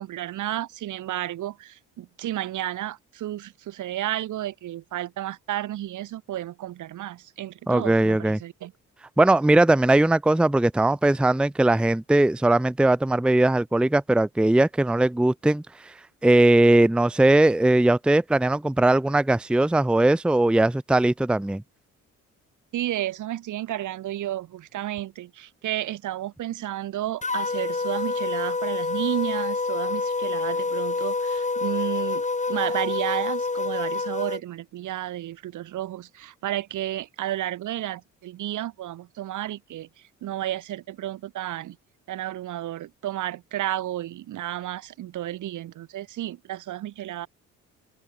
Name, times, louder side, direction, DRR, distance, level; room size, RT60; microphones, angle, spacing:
voice 1, 0.0-8.7 22.7-39.9 40.2-41.8 42.1-47.3, right 13 dB, 80° right, 4.2 m, -32 dB
voice 2, 7.7-8.4 9.2-15.6 16.2-21.6, right 2 dB, 5° right, 0.6 m, -20 dB
sound 1, 27.2-34.4, left 3 dB, 25° left, 7.0 m, -27 dB
open air
cardioid pair, 90°, 30 cm